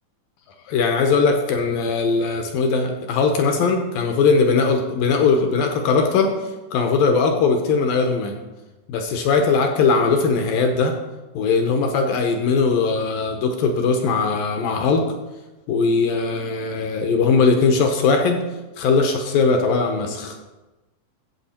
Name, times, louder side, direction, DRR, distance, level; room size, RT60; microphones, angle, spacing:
voice 1, 0.7-6.3 6.7-8.4 8.9-10.9 11.3-15.0 15.7-18.4 18.8-20.4, left 4 dB, 75° left, 4 dB, 2.2 m, -19 dB
14.5 x 7.7 x 4.3 m, 1.1 s
omnidirectional pair, 5.0 m